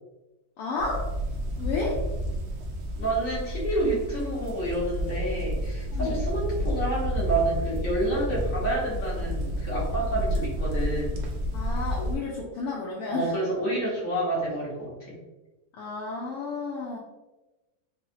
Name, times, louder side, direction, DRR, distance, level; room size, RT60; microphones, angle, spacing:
voice 1, 0.6-1.1 1.6-2.0 5.9-6.3 11.5-13.4 15.7-17.0, left 3 dB, 75° left, -4 dB, 1.0 m, -32 dB
sound 1, 0.8-12.2, equal, 80° right, 0.6 m, -30 dB
voice 2, 3.0-11.2 13.1-15.2, right 1 dB, 60° left, -7 dB, 1.6 m, -29 dB
3.9 x 2.0 x 2.6 m, 1.1 s
omnidirectional pair, 1.7 m